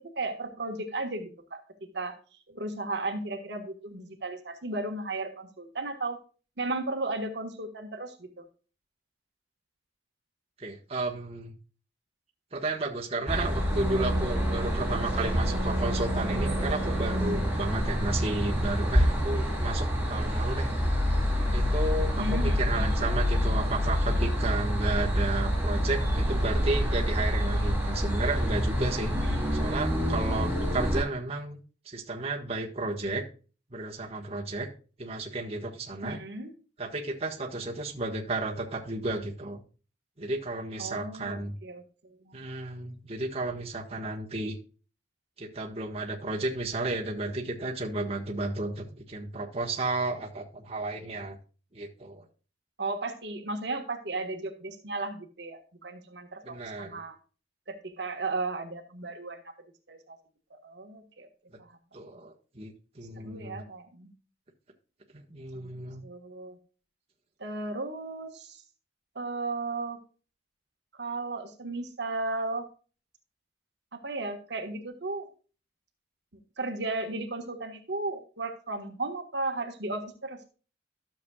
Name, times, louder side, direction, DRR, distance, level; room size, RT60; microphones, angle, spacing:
voice 1, 0.0-1.6 1.9-2.2 2.5-6.2 6.6-8.4 22.2-23.0 29.1-29.6 36.0-36.5 40.8-42.4 52.8-57.2 57.7-59.5 59.9-60.2 60.5-61.3 61.6-61.8 63.1-64.1 65.5-65.7 66.0-66.6 67.4-68.6 69.1-70.0 70.9-72.6 73.9-75.3 76.6-80.4, right 2 dB, 65° right, 5 dB, 1.5 m, -35 dB
voice 2, 10.6-11.5 12.5-20.7 21.5-29.1 29.5-31.6 31.8-33.2 33.7-34.7 35.0-36.2 36.8-39.6 40.2-41.5 42.3-44.6 45.4-51.4 51.7-52.3 56.4-57.0 61.9-63.6 65.1-66.0, right 2 dB, 35° right, -1 dB, 1.5 m, -33 dB
sound 1, 13.3-31.0, equal, 5° right, 3.9 m, -27 dB
13.0 x 7.1 x 2.3 m, 0.36 s
head